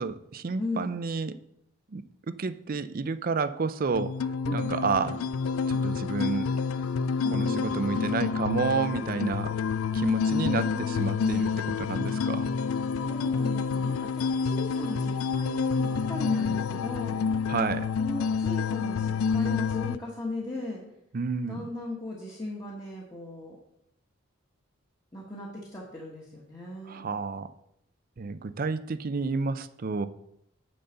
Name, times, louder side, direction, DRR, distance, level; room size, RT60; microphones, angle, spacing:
voice 1, 0.0-1.3 1.9-4.1 4.5-5.2 5.7-6.5 7.3-9.5 9.9-12.5 17.5-17.9 21.1-21.7 26.9-27.5 28.2-30.1, right 4 dB, 45° right, 13 dB, 0.5 m, -30 dB
voice 2, 0.6-1.0 4.4-4.8 7.2-7.9 10.3-11.6 13.0-17.2 18.0-20.8 21.5-23.6 25.1-27.2, left 2 dB, 20° left, -4 dB, 1.3 m, -37 dB
sound 1, 3.9-20.0, left 5 dB, 90° left, 0.4 m, -28 dB
10.0 x 4.1 x 6.9 m, 0.78 s
head